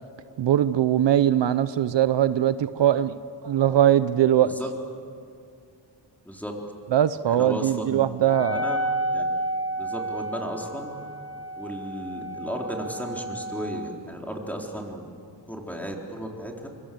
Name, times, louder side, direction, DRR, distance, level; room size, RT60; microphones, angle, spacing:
voice 1, 0.4-4.5 6.9-8.6, right 11 dB, 70° right, 14 dB, 0.7 m, -21 dB
voice 2, 7.3-8.1 8.5-8.8 9.1-9.2 9.8-10.9 11.6-15.0 15.5-16.7, equal, 5° left, 0 dB, 4.0 m, -34 dB
Wind instrument woodwind instrument, 8.2-13.9, right 1 dB, 30° right, 1.6 m, -31 dB
25.0 x 24.0 x 7.8 m, 2.5 s
cardioid pair, 90°, 45 cm